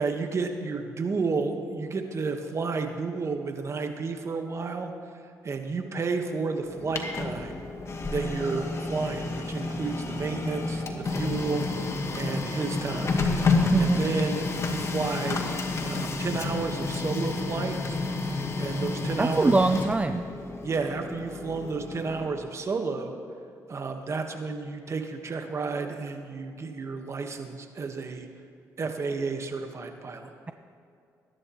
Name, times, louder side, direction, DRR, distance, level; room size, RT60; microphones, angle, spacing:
voice 1, 0.0-4.9 5.4-7.6 8.1-11.7 12.1-13.2 13.4-15.5 15.8-18.0 18.6-19.6 20.6-23.2 23.7-28.3 28.8-30.3, right 4 dB, 45° right, 5 dB, 1.5 m, -31 dB
Printer, 6.7-22.4, left 3 dB, 40° left, 1.6 m, -30 dB
voice 2, 13.7-14.1 19.2-20.2, right 3 dB, 20° right, 9 dB, 0.5 m, -23 dB
21.0 x 11.0 x 3.1 m, 2.5 s
supercardioid pair, 70°, 7 cm